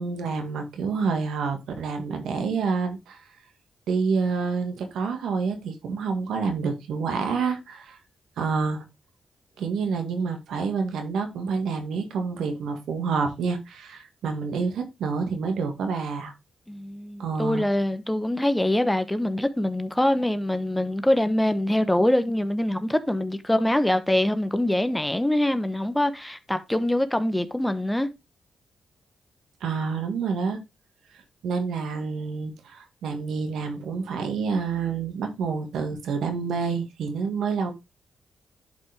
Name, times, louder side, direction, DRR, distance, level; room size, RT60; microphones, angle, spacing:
voice 1, 0.0-3.2 3.9-8.0 8.4-8.8 9.6-16.3 17.2-17.7 29.6-30.6 31.1-37.7, right 5 dB, 85° right, 1.8 m, -28 dB
voice 2, 16.7-28.1, left 1 dB, 10° left, 1.1 m, -24 dB
11.0 x 5.3 x 3.5 m
cardioid pair, 80°, 0 cm